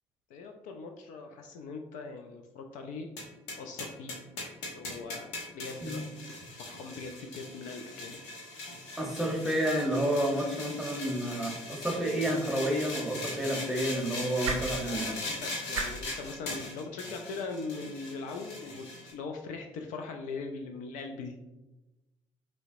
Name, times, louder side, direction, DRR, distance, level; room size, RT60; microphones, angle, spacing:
voice 1, 0.3-3.1 3.6-4.1 4.6-5.3 5.5-6.3 6.6-8.2 14.8-21.6, left 4 dB, 55° left, 4 dB, 0.4 m, -41 dB
sound 1, 3.2-19.1, left 2 dB, 70° left, 0.8 m, -40 dB
voice 2, 9.0-15.2, right 1 dB, ahead, 0 dB, 1.0 m, -30 dB
sound 2, 12.6-18.9, right 4 dB, 80° right, 0.5 m, -43 dB
5.5 x 2.1 x 2.7 m, 1.0 s
figure-of-eight pair, 50°, 15 cm